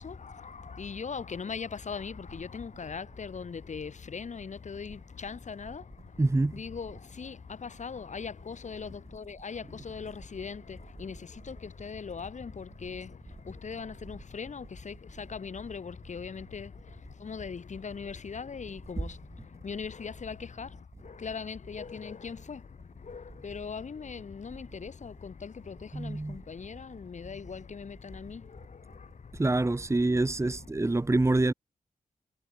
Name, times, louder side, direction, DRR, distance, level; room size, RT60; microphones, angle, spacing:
voice 1, 0.0-29.6 29.9-30.7, left 5 dB, 60° left, 3.0 m, -40 dB
voice 2, 6.2-6.6 25.9-26.4 29.3-31.5, right 2 dB, 20° right, 1.5 m, -26 dB
wide cardioid pair, 85°, 14 cm